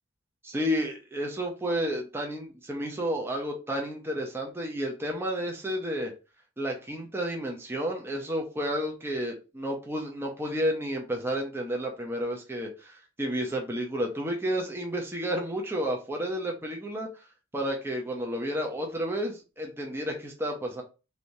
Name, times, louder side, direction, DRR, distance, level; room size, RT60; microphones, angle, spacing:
voice 1, 0.4-6.1 6.6-17.1 17.5-20.8, equal, 10° right, 1 dB, 0.5 m, -31 dB
3.2 x 2.6 x 2.6 m, 0.31 s
head